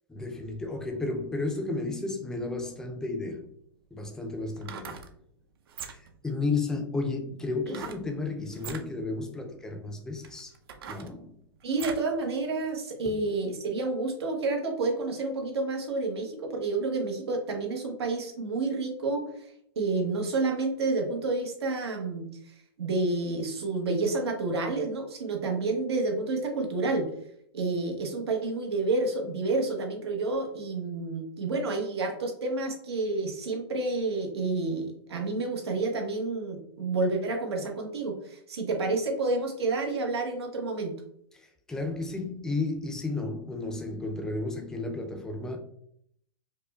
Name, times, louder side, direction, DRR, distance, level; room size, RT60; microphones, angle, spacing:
voice 1, 0.1-3.4 3.9-5.0 5.8-10.5 10.9-11.4 13.1-13.2 41.3-45.6, left 3 dB, 5° left, 0.4 m, -33 dB
sound 1, 4.5-5.1 5.7-6.2 7.7-8.1 8.5-8.9 9.6-9.7 10.2-12.1 12.5-12.6, right 7 dB, 70° right, 0.5 m, -41 dB
voice 2, 11.6-27.1 27.5-40.9, right 3 dB, 90° right, 1.0 m, -29 dB
4.9 x 2.1 x 2.3 m
hypercardioid pair, 155°, 13 cm